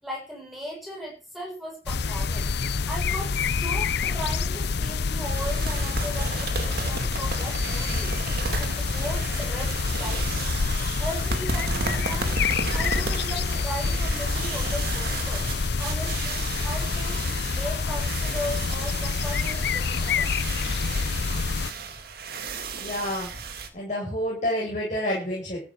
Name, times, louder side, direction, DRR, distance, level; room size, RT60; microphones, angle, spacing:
voice 1, 0.0-2.5 2.9-8.2 8.5-10.6 11.0-12.3 12.7-15.5 15.8-20.5, equal, ahead, -2 dB, 7.0 m, -37 dB
sound 1, 1.9-21.7, left 5 dB, 55° left, 0.6 m, -27 dB
sound 2, 5.2-23.7, right 3 dB, 50° right, 2.2 m, -34 dB
voice 2, 22.8-23.3 23.7-25.6, equal, 40° left, -4 dB, 6.4 m, -28 dB
14.0 x 7.9 x 6.4 m, 0.36 s
head